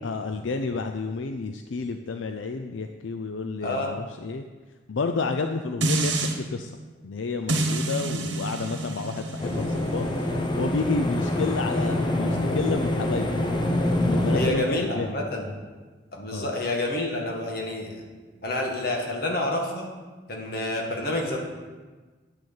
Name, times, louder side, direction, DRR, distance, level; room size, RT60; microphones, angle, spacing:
voice 1, 0.0-4.4 4.9-6.7 7.0-10.1 10.6-13.3 14.0-15.1 16.3-16.5, left 4 dB, 80° left, 6 dB, 0.5 m, -30 dB
sound 1, 5.8-6.4 7.5-12.6 13.1-13.2, right 2 dB, 70° right, 1.3 m, -30 dB
sound 2, 9.4-14.5, left 1 dB, 25° left, 1.0 m, -25 dB
voice 2, 14.3-15.5 16.1-18.0 18.4-19.9 20.3-21.4, left 1 dB, 50° left, 0 dB, 1.8 m, -28 dB
10.0 x 6.4 x 7.1 m, 1.3 s
head